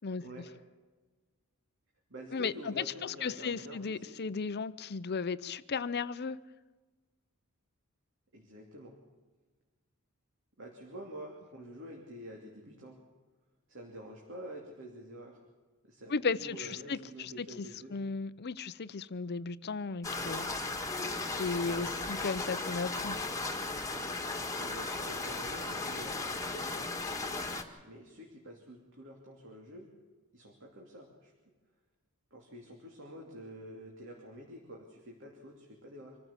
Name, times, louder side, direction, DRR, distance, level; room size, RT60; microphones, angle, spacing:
voice 1, 0.2-0.5 2.1-4.2 8.3-9.0 10.6-13.0 13.7-15.4 15.8-18.0 21.6-22.2 24.5-26.9 27.8-29.9 30.3-31.3 32.3-36.2, right 1 dB, 60° right, 2.9 m, -48 dB
voice 2, 2.3-6.4 16.1-17.6 17.9-20.5 21.3-23.2, left 4 dB, 50° left, 0.6 m, -35 dB
sound 1, 20.0-27.6, left 3 dB, 15° left, 1.7 m, -36 dB
25.5 x 14.5 x 7.3 m
head